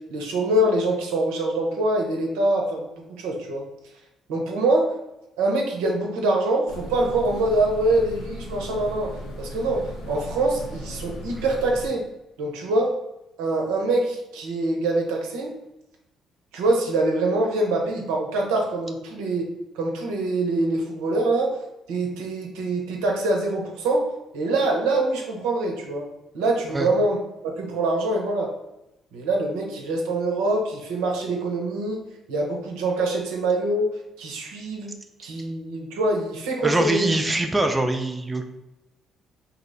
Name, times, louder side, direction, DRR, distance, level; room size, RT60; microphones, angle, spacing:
voice 1, 0.1-3.6 4.3-4.9 5.4-12.0 12.4-12.9 13.4-15.5 16.5-19.5 19.7-21.6 21.9-24.1 24.3-26.1 26.3-27.2 27.4-28.5 29.1-32.0 32.3-33.9 34.2-34.9 35.2-37.2, right 2 dB, 85° right, 0 dB, 0.6 m, -24 dB
sound 1, 6.7-11.9, left 1 dB, 75° left, 0.6 m, -37 dB
voice 2, 36.6-38.4, right 1 dB, 20° right, 4 dB, 0.4 m, -23 dB
2.7 x 2.1 x 3.8 m, 0.91 s
hypercardioid pair, 55°, 0 cm